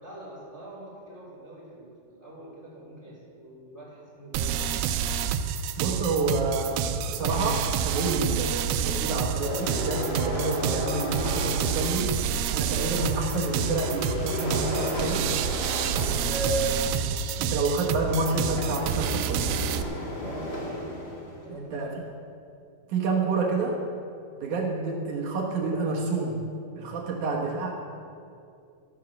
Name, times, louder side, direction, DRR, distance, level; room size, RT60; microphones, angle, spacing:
voice 1, 0.0-4.7 20.2-20.7 21.4-21.9 27.1-27.3, right 1 dB, 5° right, -7 dB, 3.1 m, -45 dB
sound 1, 4.3-19.8, right 8 dB, 90° right, 2.5 m, -28 dB
voice 2, 5.8-12.2 12.5-15.3 16.2-19.5 21.6-21.9 22.9-23.8 24.4-26.4 26.8-27.8, right 3 dB, 65° right, -1 dB, 2.4 m, -29 dB
sound 2, 9.4-12.0 12.7-21.5, left 1 dB, 30° left, 1.1 m, -34 dB
13.0 x 8.3 x 6.3 m, 2.5 s
omnidirectional pair, 4.3 m